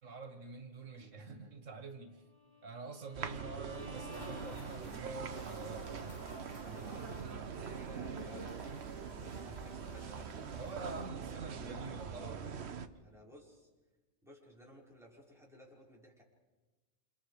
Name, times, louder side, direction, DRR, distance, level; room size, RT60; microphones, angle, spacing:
voice 1, 0.0-2.2 2.6-6.0 10.5-12.5 12.8-12.9, right 3 dB, 90° right, 7 dB, 2.1 m, -46 dB
Bowed string instrument, 2.2-5.3, left 4 dB, 40° right, 2.4 m, -55 dB
sound 1, 3.1-12.9, right 6 dB, 60° right, 1.2 m, -43 dB
sound 2, 3.7-11.1, right 1 dB, 35° left, 4.1 m, -52 dB
voice 2, 6.6-10.6 11.3-13.7 14.2-16.2, equal, ahead, -4 dB, 5.5 m, -57 dB
29.0 x 27.5 x 5.0 m, 1.2 s
omnidirectional pair, 1.3 m